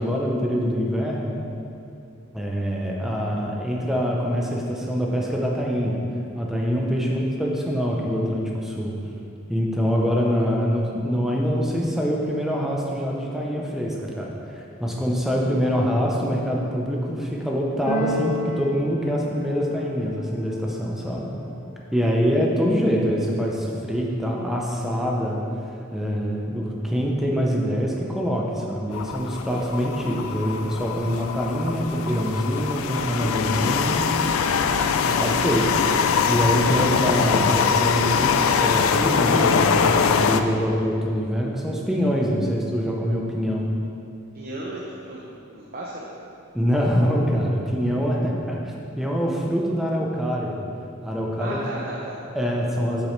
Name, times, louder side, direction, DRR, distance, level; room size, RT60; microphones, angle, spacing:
voice 1, 0.0-1.4 2.3-6.0 6.3-9.0 9.5-21.3 21.9-25.4 25.9-34.0 35.0-36.0 36.3-43.7 46.5-50.6 51.0-51.6 52.3-53.1, equal, ahead, -2 dB, 0.7 m, -24 dB
Keyboard (musical), 17.8-20.0, left 1 dB, 35° left, 0.7 m, -30 dB
sound 1, 28.9-40.4, left 6 dB, 70° left, 0.4 m, -22 dB
voice 2, 44.3-45.2 45.5-46.1 51.4-52.2, right 1 dB, 45° right, -4 dB, 0.7 m, -34 dB
8.2 x 6.9 x 3.2 m, 2.6 s
head